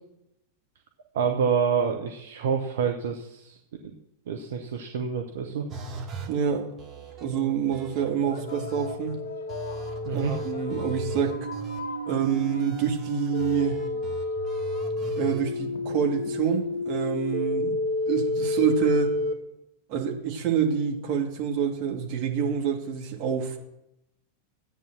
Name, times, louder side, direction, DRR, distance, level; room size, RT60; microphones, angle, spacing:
voice 1, 1.1-3.6 3.8-3.9 4.3-5.7 10.0-10.3, right 6 dB, 60° right, 3 dB, 1.2 m, -27 dB
sound 1, 5.7-6.3 6.8-7.2 7.7-9.2 9.5-11.8 12.2-15.4, right 4 dB, 25° right, 2.6 m, -40 dB
sound 2, 6.1-19.3, left 2 dB, 80° right, 2.2 m, -31 dB
voice 2, 6.3-6.7 7.2-9.1 10.1-11.4 12.1-13.8 15.2-17.8 18.1-19.2 19.9-23.6, right 7 dB, 45° right, 1 dB, 2.6 m, -27 dB
sound 3, 6.9-7.1 8.0-16.9, left 5 dB, 60° left, 1.3 m, -44 dB
13.5 x 9.0 x 6.4 m, 0.85 s
figure-of-eight pair, 90°, 0 cm